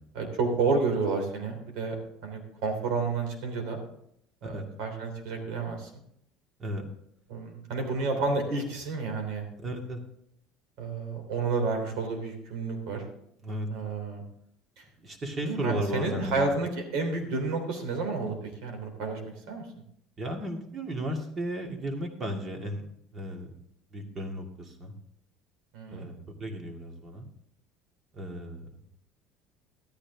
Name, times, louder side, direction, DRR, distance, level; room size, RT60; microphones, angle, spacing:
voice 1, 0.1-2.0 2.2-3.8 4.4-5.9 7.3-9.4 10.8-13.0 13.7-14.2 15.4-19.2 19.5-19.6 25.7-26.1, right 4 dB, 75° right, 3 dB, 3.2 m, -30 dB
voice 2, 9.6-10.0 13.4-13.7 15.0-16.5 20.2-22.9 23.1-23.5 23.9-24.9 25.9-27.3 28.1-28.7, equal, 30° right, 3 dB, 2.3 m, -35 dB
13.0 x 10.0 x 3.6 m, 0.72 s
supercardioid pair, 105°, 0 cm